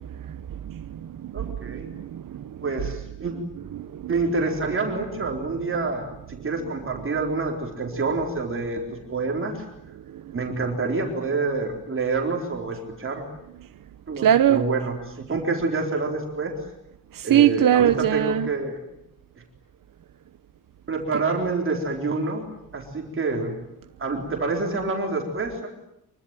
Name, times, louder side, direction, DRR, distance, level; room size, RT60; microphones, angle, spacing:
voice 1, 0.0-2.9 3.3-4.1 6.6-6.7 10.1-10.2 14.2-14.7 17.1-18.5 21.1-21.2, right 10 dB, 75° right, 1.0 m, -23 dB
voice 2, 1.3-1.9 2.6-3.3 4.1-8.8 9.1-9.6 10.3-13.2 14.1-16.6 17.2-18.8 20.9-22.4 22.7-23.6 24.0-25.7, right 3 dB, 40° right, 4.3 m, -27 dB
25.5 x 24.0 x 9.1 m
wide cardioid pair, 175°, 34 cm